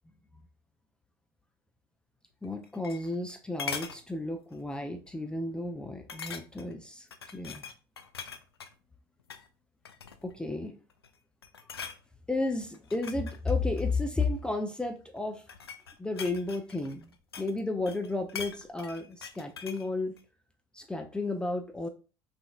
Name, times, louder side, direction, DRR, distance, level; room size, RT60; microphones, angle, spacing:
sound 1, 2.4-3.3 3.6-4.0 4.5-4.7 5.1-5.2 6.1-6.7 7.1-8.7 9.2-9.5 9.8-10.4 10.9-11.2 11.4-12.0 12.7-14.4 15.2-17.6 17.9-19.9 20.2-20.3, left 6 dB, 80° left, 0.4 m, -42 dB
voice 1, 2.4-7.1 7.3-7.6 10.2-10.8 12.3-15.4 16.0-17.1 17.4-20.2 20.7-21.9, left 2 dB, 5° left, 4 dB, 0.5 m, -33 dB
5.7 x 2.5 x 2.3 m, 0.35 s
figure-of-eight pair, 70°, 13 cm